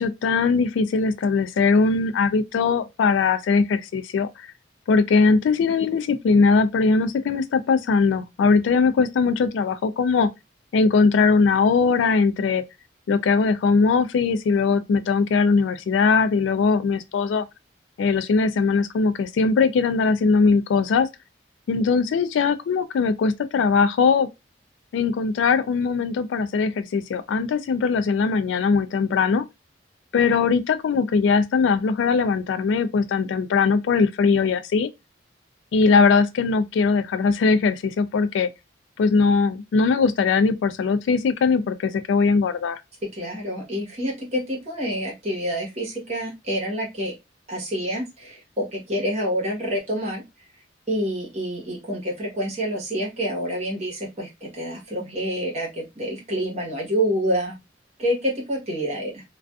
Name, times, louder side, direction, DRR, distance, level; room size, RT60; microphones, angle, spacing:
voice 1, 0.0-4.3 4.9-10.3 10.7-12.6 13.1-17.4 18.0-21.1 21.7-24.3 24.9-29.5 30.1-34.9 35.7-38.5 39.0-42.8, left 4 dB, 75° left, 0.3 m, -20 dB
voice 2, 43.1-47.1 47.5-50.2 50.9-57.6 58.0-59.2, equal, 35° right, 1.0 m, -27 dB
2.4 x 2.3 x 2.3 m
head